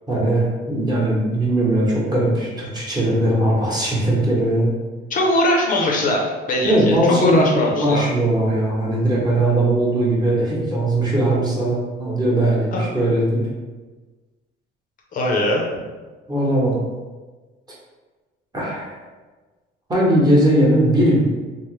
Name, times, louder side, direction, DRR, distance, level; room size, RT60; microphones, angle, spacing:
voice 1, 0.1-4.7 6.6-13.4 16.3-16.8 18.5-19.0 19.9-21.2, right 1 dB, 20° right, -5 dB, 0.9 m, -19 dB
voice 2, 5.1-8.0 12.7-12.8 15.1-15.7, left 1 dB, 45° left, -1 dB, 0.5 m, -20 dB
3.1 x 2.0 x 3.0 m, 1.3 s
cardioid pair, 115°, 19 cm